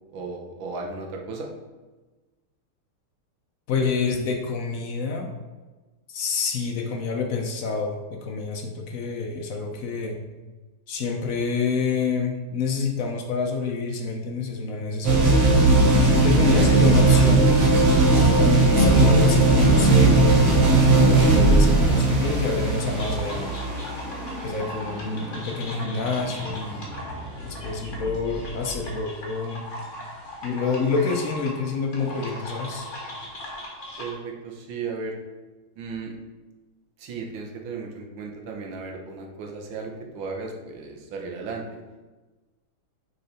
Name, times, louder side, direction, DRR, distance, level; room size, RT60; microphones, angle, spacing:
voice 1, 0.1-1.5 16.4-16.9 34.0-35.2 35.8-36.1 37.0-41.6, right 4 dB, 70° right, 1 dB, 1.7 m, -35 dB
voice 2, 3.7-5.4 6.1-10.2 10.9-15.5 16.1-17.5 18.1-23.5 24.4-26.9 27.4-29.7 30.4-32.9, left 4 dB, 80° left, 2 dB, 0.7 m, -28 dB
sound 1, 15.0-28.8, right 2 dB, 40° right, 1.2 m, -18 dB
sound 2, 22.9-34.1, left 1 dB, 35° left, 1.7 m, -39 dB
6.5 x 4.6 x 4.2 m, 1.2 s
omnidirectional pair, 2.4 m